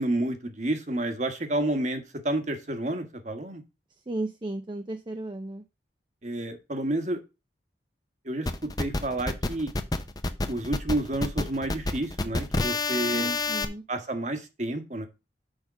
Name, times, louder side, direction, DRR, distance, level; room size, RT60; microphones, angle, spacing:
voice 1, 0.0-3.6 6.2-7.2 8.2-8.5 8.8-9.7 10.5-13.3 13.9-15.1, right 1 dB, 40° right, 1.4 m, -30 dB
voice 2, 4.1-5.6 13.1-13.8, right 2 dB, 25° right, 0.5 m, -34 dB
sound 1, 8.5-13.6, left 3 dB, 20° left, 0.7 m, -29 dB
6.5 x 5.3 x 6.0 m
head